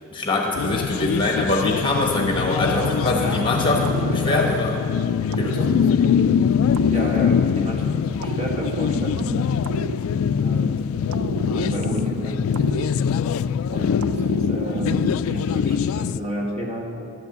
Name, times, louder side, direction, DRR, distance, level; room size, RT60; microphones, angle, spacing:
voice 1, 0.1-4.8 5.4-5.8, left 2 dB, 25° left, 1 dB, 1.1 m, -23 dB
sound 1, 0.6-16.2, left 7 dB, 75° left, 0.3 m, -23 dB
voice 2, 2.7-4.8 6.9-9.2 10.4-10.8 11.5-12.5 13.7-16.9, right 1 dB, 30° right, -2 dB, 1.8 m, -31 dB
sound 2, 3.8-4.8 5.3-7.7 8.2-10.6 11.1-13.5 14.0-15.5, right 5 dB, 85° right, 0.4 m, -32 dB
12.5 x 8.5 x 7.8 m, 2.7 s
head